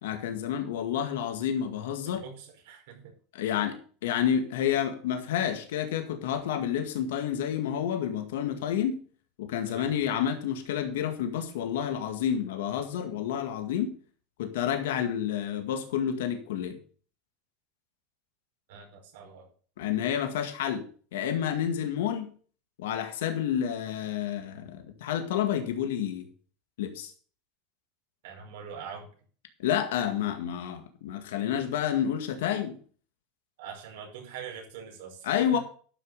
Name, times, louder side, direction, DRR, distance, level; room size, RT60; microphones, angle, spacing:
voice 1, 0.0-2.2 3.3-9.0 9.4-14.0 14.4-16.8 19.8-20.9 21.1-22.3 22.8-26.3 26.8-27.1 29.6-32.8 35.2-35.6, left 9 dB, 85° left, 6 dB, 1.9 m, -29 dB
voice 2, 2.1-3.1 9.7-9.9 18.7-19.5 28.2-29.1 33.6-35.6, right 7 dB, 80° right, 2 dB, 5.3 m, -43 dB
12.5 x 6.2 x 6.6 m, 0.43 s
supercardioid pair, 125°, 0 cm